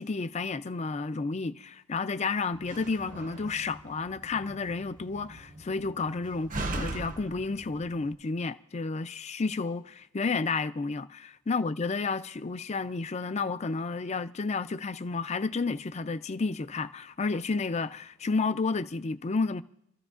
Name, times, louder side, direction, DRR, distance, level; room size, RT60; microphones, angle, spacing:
voice 1, 0.0-19.6, left 4 dB, 35° left, 0.5 m, -31 dB
Slam, 2.5-8.1, right 2 dB, 40° right, 0.8 m, -40 dB
28.5 x 14.0 x 2.5 m
head